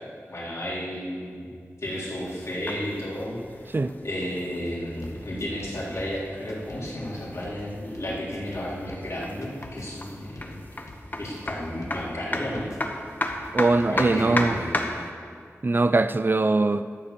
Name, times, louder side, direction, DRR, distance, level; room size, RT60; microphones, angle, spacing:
voice 1, 0.3-1.5 1.8-3.4 4.0-10.6 11.2-12.7 13.9-14.9, equal, 65° left, -6 dB, 3.6 m, -32 dB
sound 1, 1.8-15.1, left 1 dB, 35° left, 1.1 m, -35 dB
sound 2, 4.6-14.7, left 2 dB, 80° left, 1.6 m, -47 dB
voice 2, 13.5-14.6 15.6-16.8, right 3 dB, 40° right, 12 dB, 0.4 m, -21 dB
13.0 x 7.5 x 6.9 m, 2.1 s
wide cardioid pair, 80°, 5 cm